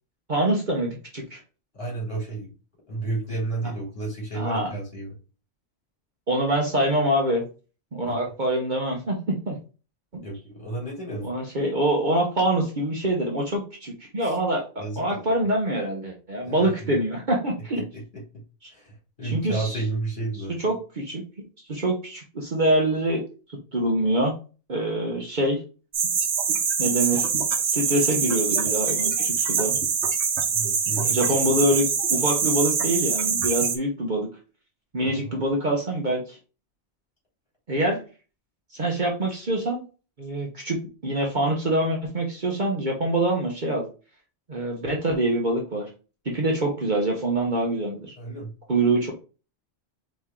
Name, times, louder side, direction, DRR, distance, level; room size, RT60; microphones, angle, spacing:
voice 1, 0.3-1.4 3.6-3.7 4.3-4.7 6.3-7.4 7.9-9.6 10.1-10.2 11.2-17.8 19.2-19.8 20.6-21.2 21.7-23.2 23.7-24.3 24.7-25.6 26.8-27.3 27.7-29.7 31.0-34.3 34.9-36.4 37.7-38.0 38.7-39.8 40.2-40.8 41.0-43.9 44.5-45.9 46.2-48.1 48.7-49.1, right 1 dB, 45° right, 0 dB, 1.0 m, -25 dB
voice 2, 1.7-2.5 2.9-5.1 8.1-8.2 10.2-11.3 14.2-14.3 14.8-15.3 16.4-16.7 17.9-18.2 18.7-20.5 30.5-31.4 35.1-35.4 48.2-48.5, right 3 dB, 45° left, -4 dB, 2.9 m, -32 dB
sound 1, 25.9-33.8, right 6 dB, 80° right, 1.1 m, -24 dB
4.2 x 3.3 x 3.7 m, 0.34 s
omnidirectional pair, 1.1 m